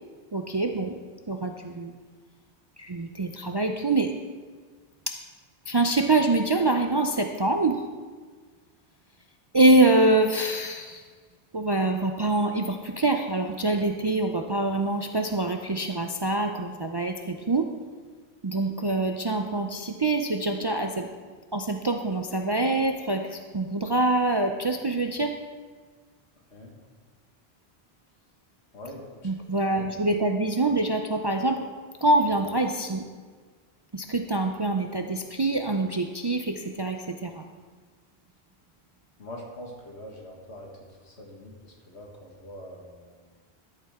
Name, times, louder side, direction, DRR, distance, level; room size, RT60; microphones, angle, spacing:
voice 1, 0.3-1.0 1.3-1.9 2.8-4.1 5.1-5.2 5.7-7.8 9.5-11.0 11.5-17.7 18.4-21.1 21.5-25.3 29.2-31.6 32.0-33.0 33.9-37.5, right 2 dB, 40° right, 4 dB, 0.3 m, -25 dB
voice 2, 28.7-29.3 29.7-29.9 39.2-40.7 41.0-43.2, equal, 90° left, -1 dB, 1.9 m, -43 dB
12.5 x 7.5 x 3.6 m, 1.5 s
omnidirectional pair, 1.1 m